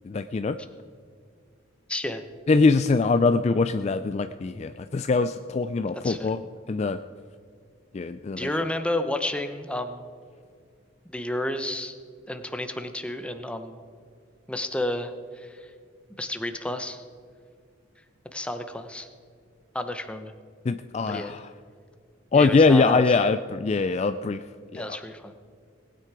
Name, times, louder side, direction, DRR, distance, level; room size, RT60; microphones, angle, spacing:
voice 1, 0.1-0.6 2.5-6.4 6.7-7.0 7.9-8.5 20.7-21.5 22.3-24.4 24.7-25.0, left 4 dB, 30° left, 10 dB, 0.3 m, -22 dB
voice 2, 1.9-2.2 6.0-6.3 8.4-10.0 11.1-11.9 12.3-13.8 14.5-15.7 16.2-17.0 18.3-19.1 19.7-20.3 21.1-21.3 22.3-23.1 24.7-25.3, left 1 dB, 5° left, 8 dB, 0.8 m, -31 dB
19.0 x 9.5 x 4.8 m, 2.1 s
head